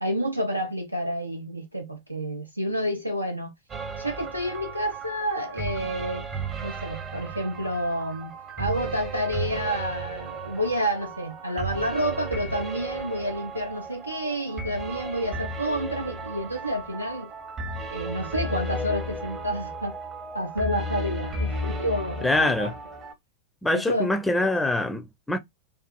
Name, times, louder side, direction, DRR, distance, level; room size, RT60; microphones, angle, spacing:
voice 1, 0.0-3.5 4.0-6.3 6.6-17.3 17.9-20.0 20.3-22.7 23.7-24.5, equal, 90° right, 0.4 m, -29 dB
sound 1, 3.7-23.1, right 2 dB, 25° right, 0.7 m, -34 dB
voice 2, 22.2-22.7 23.6-25.4, left 2 dB, 5° left, 0.5 m, -24 dB
2.6 x 2.4 x 2.2 m
figure-of-eight pair, 90°, 0 cm